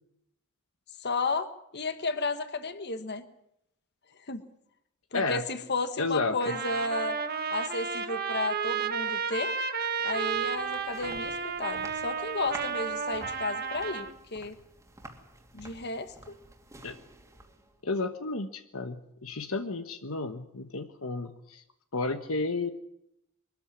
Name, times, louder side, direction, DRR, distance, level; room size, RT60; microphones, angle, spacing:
voice 1, 1.0-3.2 4.3-4.4 5.1-7.2 7.5-9.6 10.0-14.6 15.5-16.1, left 3 dB, 50° left, 10 dB, 1.5 m, -33 dB
voice 2, 6.0-6.4 16.8-17.0 17.8-21.6 21.9-22.7, left 3 dB, 70° left, 8 dB, 1.3 m, -32 dB
Trumpet, 6.4-14.1, right 6 dB, 45° right, 1.6 m, -32 dB
sound 1, 10.0-17.8, right 2 dB, 15° right, 2.6 m, -50 dB
23.5 x 14.0 x 9.7 m, 0.79 s
head